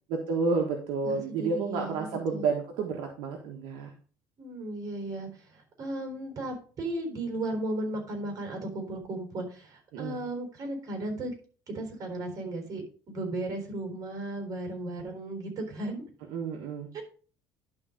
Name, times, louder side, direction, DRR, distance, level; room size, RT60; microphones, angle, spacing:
voice 1, 0.1-3.9 9.9-10.2 16.3-16.9, right 4 dB, 75° right, 2 dB, 1.4 m, -30 dB
voice 2, 1.0-2.5 4.4-11.3 11.7-16.0 16.9-17.0, right 1 dB, 45° right, 4 dB, 4.1 m, -35 dB
11.0 x 4.0 x 5.2 m, 0.41 s
cardioid pair, 110°, 8 cm